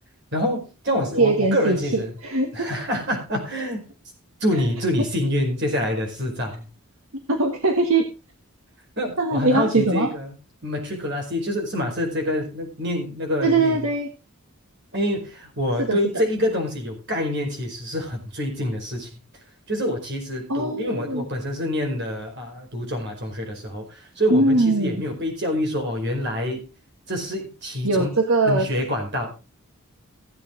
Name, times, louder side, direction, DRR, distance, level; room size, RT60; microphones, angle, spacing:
voice 1, 0.3-2.1 2.5-3.8 4.4-6.6 9.0-10.4 10.6-13.8 14.9-19.1 19.7-26.6 27.1-28.1 28.4-29.3, left 1 dB, 50° right, 3 dB, 4.9 m, -26 dB
voice 2, 1.2-2.7 7.3-8.1 9.2-10.1 13.4-14.1 15.8-16.0 20.5-21.2 24.3-25.0 27.8-28.7, right 2 dB, 75° right, 4 dB, 1.5 m, -21 dB
16.0 x 8.5 x 3.8 m, 0.29 s
head